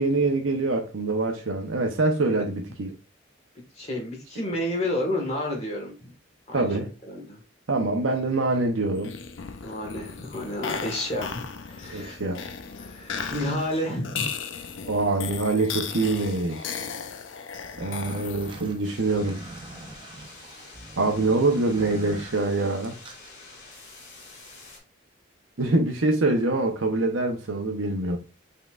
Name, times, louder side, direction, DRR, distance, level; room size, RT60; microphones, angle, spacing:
voice 1, 0.0-2.9 6.5-6.9 7.7-9.1 11.9-12.4 14.9-16.7 17.8-19.4 21.0-23.0 25.6-28.2, right 2 dB, 85° right, 0.8 m, -25 dB
voice 2, 3.7-6.1 6.5-6.7 7.1-7.4 9.6-12.2 12.8-14.3, left 1 dB, 30° left, 1.6 m, -30 dB
sound 1, 9.0-18.9, left 6 dB, 75° left, 0.5 m, -36 dB
sound 2, 17.6-23.3, right 2 dB, 25° right, 0.6 m, -44 dB
sound 3, 18.8-24.8, left 3 dB, 55° left, 2.2 m, -47 dB
5.6 x 3.7 x 2.4 m
head